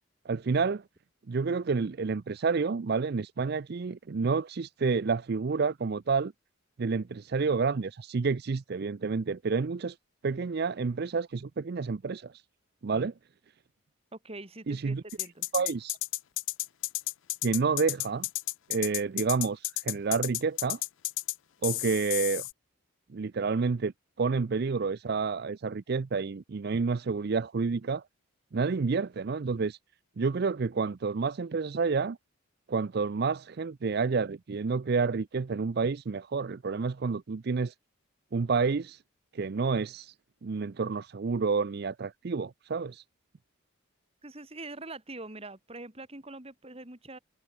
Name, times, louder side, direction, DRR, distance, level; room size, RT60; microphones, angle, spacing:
voice 1, 0.3-0.8 1.3-6.3 6.8-10.0 10.2-12.3 12.8-13.1 14.7-15.0 15.5-16.0 17.4-18.3 18.7-20.8 21.6-22.4 23.1-23.9 24.2-28.0 28.5-29.8 30.2-32.2 32.7-37.7 38.3-39.0 39.3-40.1 40.4-43.0, right 4 dB, 50° right, 0.4 m, -29 dB
voice 2, 14.1-15.5 44.2-47.2, right 2 dB, 30° right, 2.1 m, -44 dB
sound 1, 15.1-21.3 21.6-22.5, left 20 dB, 60° left, 0.4 m, -32 dB
head